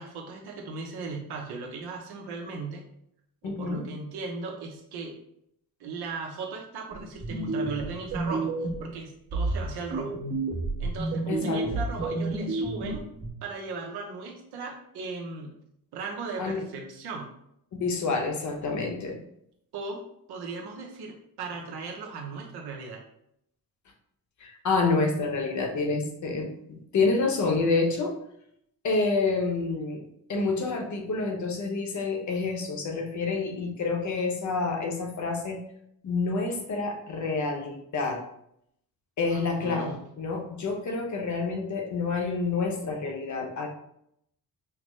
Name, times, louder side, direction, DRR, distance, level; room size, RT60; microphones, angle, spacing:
voice 1, 0.0-2.8 3.4-5.2 5.8-8.5 8.8-10.2 10.8-13.0 13.4-15.5 15.9-17.3 19.7-20.0 20.3-23.0 39.3-40.0, right 4 dB, 85° right, 0 dB, 0.8 m, -37 dB
voice 2, 3.4-3.8 11.3-11.8 16.4-16.6 17.8-19.2 24.4-26.5 26.9-28.2 28.8-30.0 30.3-35.6 36.0-38.2 39.2-43.7, left 3 dB, 50° left, 3 dB, 0.8 m, -28 dB
sound 1, 6.9-8.9 9.3-13.3, right 2 dB, 60° right, 1.3 m, -30 dB
5.7 x 2.0 x 3.1 m, 0.75 s
cardioid pair, 145°, 38 cm